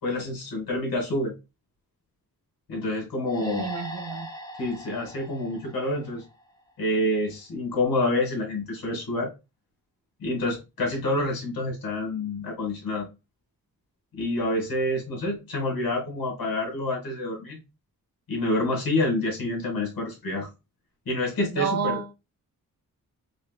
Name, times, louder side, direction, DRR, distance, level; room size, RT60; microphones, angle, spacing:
voice 1, 0.0-1.3 2.7-3.7 4.6-6.2 6.8-9.3 10.2-13.1 14.1-17.6 18.3-20.5 21.1-22.0, left 1 dB, 75° left, 2.0 m, -27 dB
sound 1, 3.2-6.7, equal, 10° left, 0.5 m, -40 dB
voice 2, 3.4-4.3 21.5-22.1, right 5 dB, 50° right, 0.5 m, -30 dB
4.9 x 2.5 x 2.3 m
wide cardioid pair, 175°, 35 cm